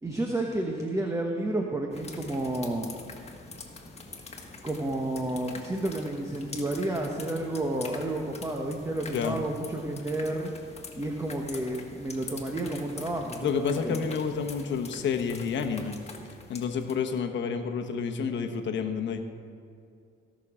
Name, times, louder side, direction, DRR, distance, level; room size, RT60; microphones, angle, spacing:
voice 1, 0.0-2.9 4.6-10.5 10.9-14.1, right 1 dB, 15° right, 1 dB, 1.1 m, -31 dB
sound 1, 1.9-17.2, left 3 dB, 30° left, 1.6 m, -45 dB
voice 2, 13.4-16.0 16.5-19.2, left 6 dB, 70° left, 5 dB, 1.1 m, -29 dB
17.0 x 6.3 x 4.9 m, 2.5 s
cardioid pair, 90°, 20 cm